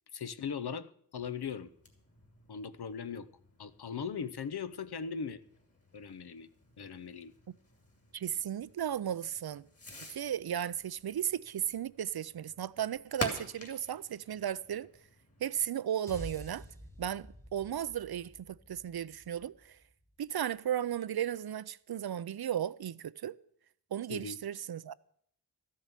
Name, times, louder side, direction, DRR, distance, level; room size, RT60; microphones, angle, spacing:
voice 1, 0.1-1.7 2.5-3.3 3.6-5.4 5.9-6.5 6.8-7.3 24.1-24.4, left 6 dB, 65° left, 0.8 m, -39 dB
Fireworks, 1.1-15.7, left 1 dB, 35° left, 2.6 m, -48 dB
voice 2, 8.1-9.6 10.1-14.9 15.4-16.6 17.0-19.8 20.2-23.4 23.9-24.9, right 10 dB, 65° right, 0.5 m, -35 dB
sound 1, 16.1-20.4, equal, 5° left, 1.3 m, -50 dB
13.5 x 7.4 x 8.3 m
wide cardioid pair, 100°, 41 cm